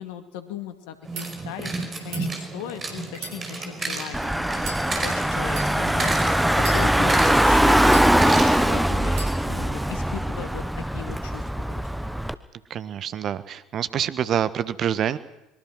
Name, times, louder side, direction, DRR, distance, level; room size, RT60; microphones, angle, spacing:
voice 1, 0.0-1.7 2.0-8.0 8.2-9.1 9.4-10.6 10.9-12.1, left 10 dB, 65° left, 8 dB, 2.3 m, -38 dB
sound 1, 1.0-8.9, right 3 dB, 25° right, 5.1 m, -32 dB
sound 2, 1.0-1.3 2.0-2.3 3.1-4.0 4.6-4.8 5.5-5.7 6.5-7.2 7.8-8.5 9.1-9.3, right 3 dB, 60° right, 7.7 m, -37 dB
Car / Engine, 4.1-12.3, right 1 dB, 5° right, 1.2 m, -21 dB
voice 2, 12.7-15.2, right 9 dB, 45° right, 14 dB, 1.3 m, -26 dB
24.5 x 23.0 x 6.3 m, 0.90 s
figure-of-eight pair, 65°, 0 cm